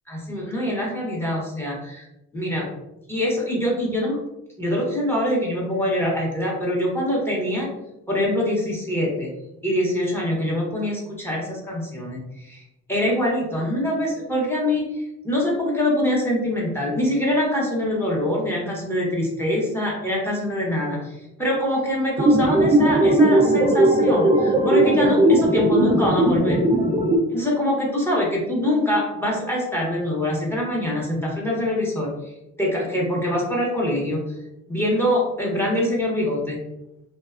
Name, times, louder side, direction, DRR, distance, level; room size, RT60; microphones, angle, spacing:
voice 1, 0.1-2.1 2.3-2.7 3.1-4.2 4.6-7.7 8.1-9.3 9.6-12.6 12.9-26.6 27.3-32.3 32.6-34.2 34.7-36.6, left 1 dB, 10° left, -3 dB, 0.8 m, -24 dB
sound 1, 22.2-27.2, right 1 dB, 20° right, 0.4 m, -18 dB
2.6 x 2.1 x 2.4 m, 0.91 s
cardioid pair, 90°, 30 cm